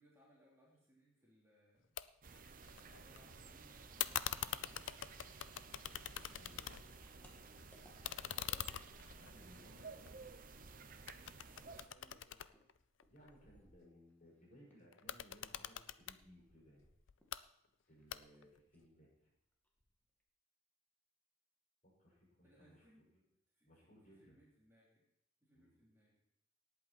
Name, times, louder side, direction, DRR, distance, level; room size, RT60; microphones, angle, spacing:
voice 1, 0.0-1.9 2.6-4.8 8.3-8.8 11.7-12.7 22.4-23.1 23.5-25.0 25.4-26.2, equal, 10° right, -6 dB, 3.4 m, -68 dB
sound 1, 2.0-2.1 2.4-3.2 4.0-7.1 7.4-10.7 11.1-13.3 14.9-16.2 17.1-17.4 18.1-18.6, left 11 dB, 60° left, 0.5 m, -44 dB
sound 2, 2.2-11.9, right 4 dB, 40° right, 0.9 m, -55 dB
voice 2, 6.3-6.8 9.2-10.4 13.1-16.9 17.9-19.3 21.8-23.2 23.6-24.4 25.5-25.8, equal, 40° left, -3 dB, 5.9 m, -63 dB
sound 3, 7.0-9.6 9.8-14.3 14.7-17.4 17.7-18.4 18.7-18.9 19.3-19.4 19.6-20.2, equal, 10° left, 1.9 m, -69 dB
18.5 x 8.6 x 4.4 m, 0.79 s
head